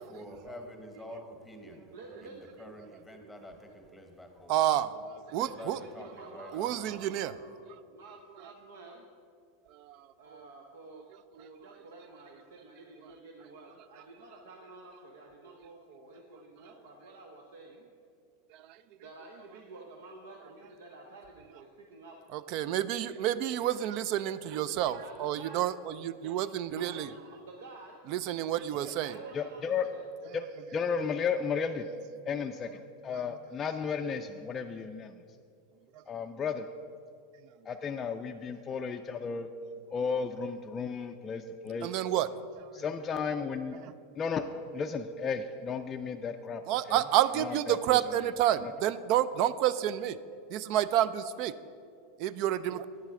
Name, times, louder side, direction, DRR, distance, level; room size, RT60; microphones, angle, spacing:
voice 1, 0.1-1.9 2.2-4.5 5.4-7.0, equal, ahead, 4 dB, 1.1 m, -47 dB
voice 2, 1.9-2.3 5.3-7.6 7.9-9.0 10.2-11.0 11.3-17.9 19.0-22.2 23.4-23.8 24.4-24.5 25.0-25.6 26.7-28.0 29.0-30.0, right 3 dB, 80° right, 1 dB, 0.7 m, -50 dB
voice 3, 4.5-5.8 6.5-7.3 9.7-10.5 11.4-11.5 18.5-18.8 22.3-27.1 28.1-29.3 33.3-33.4 35.9-36.0 41.8-42.7 43.8-43.9 46.7-50.2 50.5-51.5 52.2-52.9, right 12 dB, 55° right, 16 dB, 0.3 m, -30 dB
voice 4, 29.3-29.9 30.3-30.4 30.7-31.9 32.3-35.2 36.1-36.7 37.7-39.5 39.9-41.9 42.7-43.8 44.2-44.4 44.7-46.6 46.9-47.0 47.4-48.0 48.6-48.7, left 6 dB, 30° left, 5 dB, 0.3 m, -34 dB
9.4 x 7.3 x 3.7 m, 2.4 s
hypercardioid pair, 110°, 0 cm